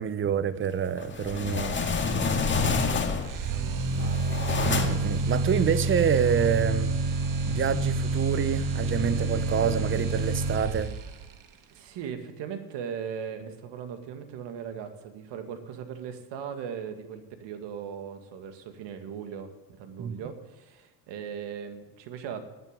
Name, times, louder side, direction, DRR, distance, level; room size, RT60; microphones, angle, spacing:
voice 1, 0.0-1.8 4.6-7.0 7.5-11.0 20.0-20.2, right 7 dB, 25° right, 0.7 m, -27 dB
sound 1, 1.0-3.4 3.9-5.2, left 4 dB, 25° left, 2.0 m, -28 dB
sound 2, 3.2-11.2, right 3 dB, 40° right, 1.5 m, -28 dB
voice 2, 3.5-4.4 11.7-19.5 19.8-22.4, right 7 dB, 65° right, 2.1 m, -38 dB
10.5 x 9.1 x 10.0 m
supercardioid pair, 100°, 47 cm